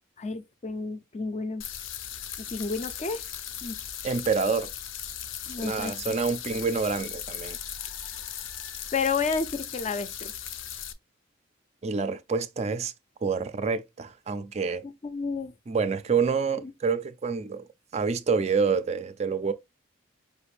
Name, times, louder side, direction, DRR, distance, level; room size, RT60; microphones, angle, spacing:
voice 1, 0.2-1.6 2.5-3.2 3.6-3.8 5.5-5.9 8.9-10.3 15.0-15.5 16.6-16.7, left 4 dB, 35° left, 0.4 m, -31 dB
sound 1, 1.6-10.9, left 9 dB, 80° left, 0.6 m, -38 dB
voice 2, 4.0-4.7 5.6-7.6 11.8-12.9 13.2-14.9 15.7-17.7 17.9-19.5, right 5 dB, 35° right, 0.3 m, -27 dB
4.8 x 2.5 x 3.2 m
head